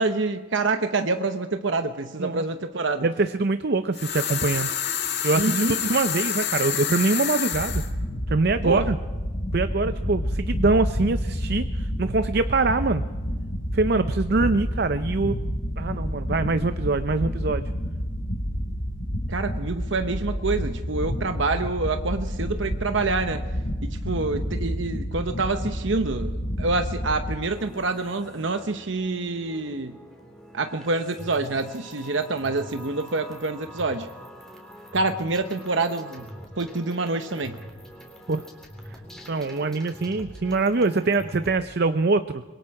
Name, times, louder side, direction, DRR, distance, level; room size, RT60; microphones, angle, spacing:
voice 1, 0.0-3.0 5.4-5.8 8.6-8.9 19.3-23.4 23.8-30.0 30.5-34.1 34.9-36.3 36.6-37.6, right 3 dB, 70° right, 7 dB, 1.0 m, -27 dB
voice 2, 3.0-4.7 5.2-7.8 8.3-9.0 9.5-13.0 13.7-15.4 15.8-17.6 38.3-38.4 38.9-39.0 39.3-42.4, right 3 dB, 50° right, 11 dB, 0.6 m, -24 dB
sound 1, 3.9-7.9, left 9 dB, 55° left, 2.1 m, -28 dB
sound 2, 7.5-27.4, equal, 90° left, 4.9 m, -29 dB
sound 3, 27.5-41.6, equal, 5° left, 3.4 m, -44 dB
25.5 x 22.5 x 4.8 m, 1.3 s
head